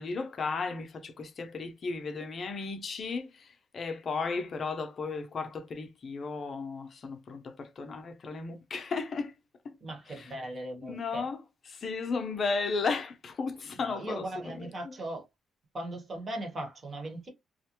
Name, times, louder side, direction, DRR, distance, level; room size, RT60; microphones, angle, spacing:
voice 1, 0.0-9.3 9.6-9.7 10.1-10.3 10.8-11.4 11.7-14.9, left 4 dB, 45° left, 0.6 m, -35 dB
voice 2, 9.8-11.3 13.8-15.2 15.7-17.3, right 1 dB, 40° right, 1.1 m, -38 dB
2.5 x 2.1 x 2.9 m
cardioid pair, 90°, 0 cm